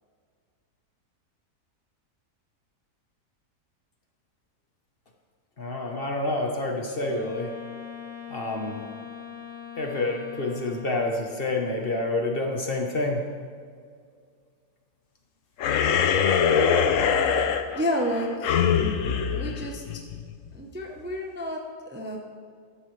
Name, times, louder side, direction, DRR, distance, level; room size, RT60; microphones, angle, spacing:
voice 1, 5.6-7.5 8.3-8.9 9.8-13.2 15.9-16.0, left 2 dB, 40° left, 1 dB, 1.2 m, -28 dB
Wind instrument woodwind instrument, 7.0-11.3, left 7 dB, 60° right, 3.4 m, -41 dB
sound 1, 15.6-20.3, left 7 dB, 65° left, 1.0 m, -23 dB
voice 2, 17.7-18.6 19.3-20.0 20.5-22.2, equal, 10° right, 1 dB, 0.7 m, -30 dB
14.0 x 11.0 x 3.3 m, 2.1 s
omnidirectional pair, 1.6 m